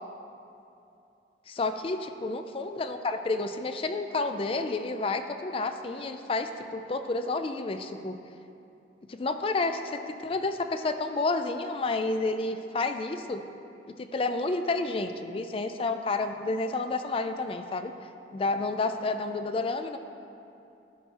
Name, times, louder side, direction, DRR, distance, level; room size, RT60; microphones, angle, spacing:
voice 1, 1.5-8.2 9.1-13.4 14.0-17.9 18.3-20.0, left 3 dB, 30° left, 8 dB, 0.4 m, -30 dB
12.0 x 4.6 x 4.1 m, 2.7 s
head